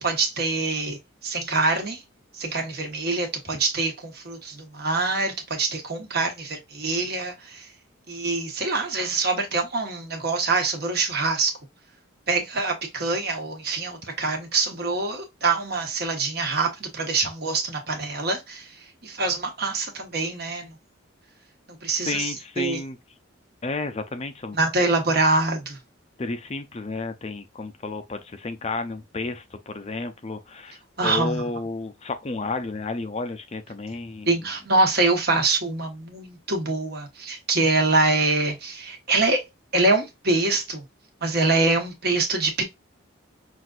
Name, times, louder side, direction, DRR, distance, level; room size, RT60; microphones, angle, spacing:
voice 1, 0.0-1.0 1.2-2.0 2.3-7.7 8.1-11.5 12.3-18.7 19.0-20.7 21.8-22.8 24.5-25.8 31.0-31.4 34.3-39.4 39.7-40.8 41.2-42.6, right 3 dB, 50° right, 1.3 m, -24 dB
voice 2, 22.1-23.0 23.6-24.9 26.2-34.5, left 3 dB, 30° left, 0.5 m, -32 dB
5.9 x 2.5 x 2.4 m
head